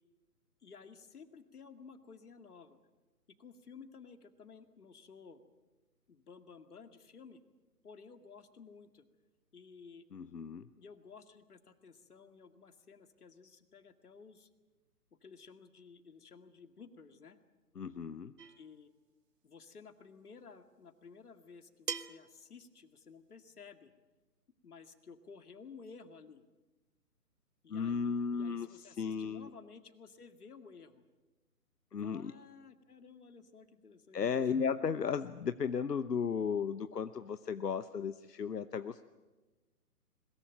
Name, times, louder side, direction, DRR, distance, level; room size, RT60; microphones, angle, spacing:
voice 1, 0.6-2.8 3.4-5.4 6.1-7.4 7.8-9.1 9.5-10.1 10.8-14.5 15.1-17.4 18.6-18.9 19.4-23.9 24.6-26.4 27.6-31.0 32.0-34.4, left 5 dB, 70° left, 8 dB, 2.3 m, -54 dB
voice 2, 10.1-10.7 17.8-18.3 27.7-29.5 31.9-32.4 34.1-39.0, left 6 dB, 90° left, 11 dB, 1.0 m, -35 dB
sound 1, 18.4-18.7 20.3-20.4 21.9-22.3, right 7 dB, 75° right, 1.1 m, -40 dB
22.0 x 21.5 x 9.1 m, 1.2 s
hypercardioid pair, 155°, 47 cm